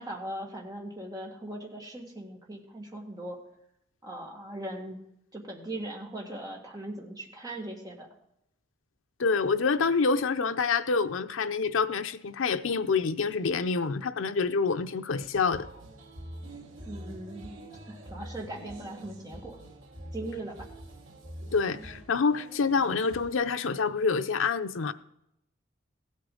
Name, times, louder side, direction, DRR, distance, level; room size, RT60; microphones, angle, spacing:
voice 1, 0.0-3.4 4.0-5.0 5.3-8.1 16.9-17.5 17.9-19.6 20.1-20.7, right 1 dB, 20° right, 1.8 m, -39 dB
voice 2, 9.2-15.7 21.5-24.9, left 4 dB, 80° left, 0.6 m, -27 dB
sound 1, 15.3-23.4, right 1 dB, 90° right, 2.3 m, -45 dB
15.5 x 8.3 x 3.8 m
head